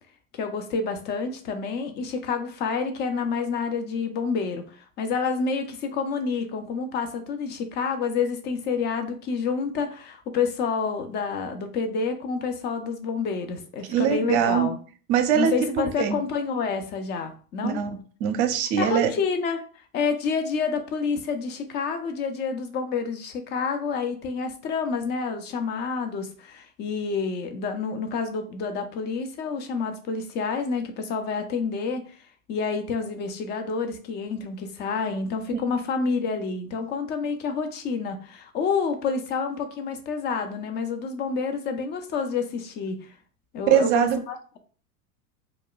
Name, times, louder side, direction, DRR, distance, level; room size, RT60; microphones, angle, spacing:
voice 1, 0.3-14.8 15.3-17.8 18.8-43.1 43.5-44.6, left 5 dB, 25° left, 7 dB, 0.3 m, -28 dB
voice 2, 13.9-14.7 15.1-16.2 17.6-19.1 43.7-44.2, right 9 dB, 50° right, 8 dB, 0.6 m, -23 dB
2.3 x 2.2 x 3.6 m, 0.41 s
hypercardioid pair, 95°, 46 cm